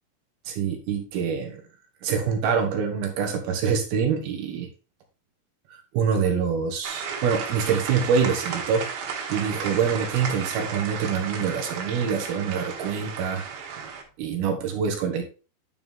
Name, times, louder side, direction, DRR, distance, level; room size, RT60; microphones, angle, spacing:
voice 1, 0.5-1.6 2.0-4.7 5.7-8.8 9.3-13.4 14.2-15.2, right 6 dB, 65° right, 3 dB, 3.0 m, -25 dB
sound 1, 6.8-14.0, right 6 dB, 80° right, 3.9 m, -34 dB
11.0 x 4.7 x 3.6 m, 0.35 s
omnidirectional pair, 5.1 m